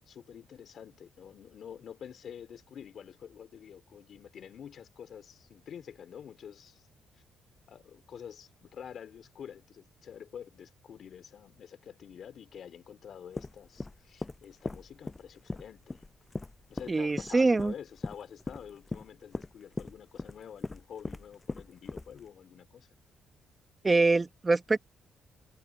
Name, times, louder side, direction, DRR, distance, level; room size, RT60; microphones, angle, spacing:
voice 1, 0.0-6.9 7.7-16.0 16.7-22.9, left 8 dB, 60° left, 3.7 m, -48 dB
sound 1, 13.3-22.3, left 2 dB, 20° left, 7.0 m, -39 dB
voice 2, 16.9-17.7 23.8-24.8, right 3 dB, 25° right, 1.5 m, -24 dB
cardioid pair, 90°, 0 cm